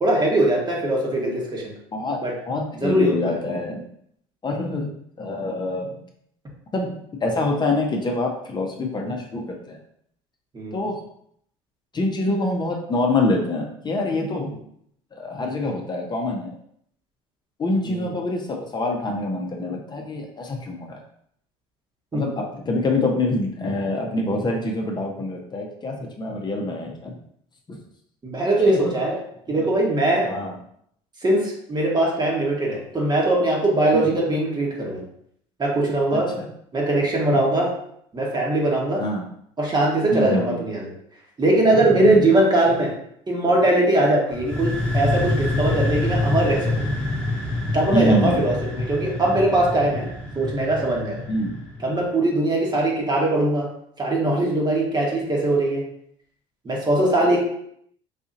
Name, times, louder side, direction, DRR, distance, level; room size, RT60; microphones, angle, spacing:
voice 1, 0.0-1.7 2.2-2.3 2.8-3.4 10.5-10.9 14.5-14.6 17.8-18.1 22.1-22.2 28.2-29.2 29.5-30.3 31.2-35.0 35.6-36.3 36.7-37.7 38.1-39.0 39.6-40.9 41.4-42.9 43.3-46.8 47.7-50.1 50.3-51.2 51.8-53.7 54.0-55.8 56.6-57.4, right 1 dB, 30° right, -2 dB, 1.2 m, -21 dB
voice 2, 2.5-3.8 4.4-4.9 5.2-6.0 6.7-9.8 10.7-11.0 11.9-14.5 15.1-16.5 17.6-21.0 22.1-27.1 27.7-27.8 28.7-28.8 29.5-29.7 30.2-30.5 33.9-34.0 36.1-36.5 39.0-39.2 40.1-40.6 41.7-42.3 47.9-48.4 51.3-51.5, left 2 dB, 30° left, 1 dB, 0.7 m, -25 dB
sound 1, 44.3-52.0, left 2 dB, 10° left, 1.2 m, -26 dB
4.1 x 2.7 x 2.5 m, 0.70 s
supercardioid pair, 85°, 15 cm